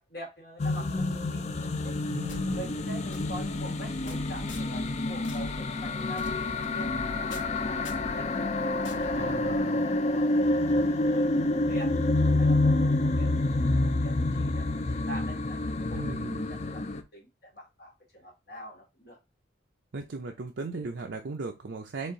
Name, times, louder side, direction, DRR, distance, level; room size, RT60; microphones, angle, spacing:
voice 1, 0.0-2.0 2.4-8.3 8.6-11.9 12.4-19.2, right 1 dB, 55° left, -2 dB, 2.0 m, -45 dB
sound 1, 0.6-17.0, left 2 dB, 35° left, 0.4 m, -28 dB
voice 2, 2.1-2.8 9.1-9.8 15.9-16.5 19.9-22.1, right 3 dB, 60° right, 3 dB, 0.5 m, -37 dB
sound 2, 2.3-9.9, left 1 dB, 75° left, 1.2 m, -45 dB
4.3 x 3.2 x 3.8 m, 0.24 s
head